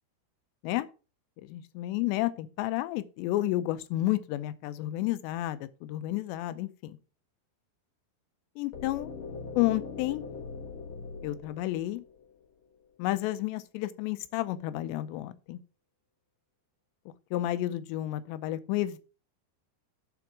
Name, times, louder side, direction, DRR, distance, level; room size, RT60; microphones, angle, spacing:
voice 1, 1.5-7.0 8.6-9.1 9.6-10.2 11.2-12.0 13.0-15.6 17.3-19.0, left 15 dB, 80° left, 2.8 m, -31 dB
sound 1, 8.7-12.6, left 4 dB, 65° left, 1.7 m, -41 dB
11.5 x 4.8 x 4.6 m
omnidirectional pair, 5.2 m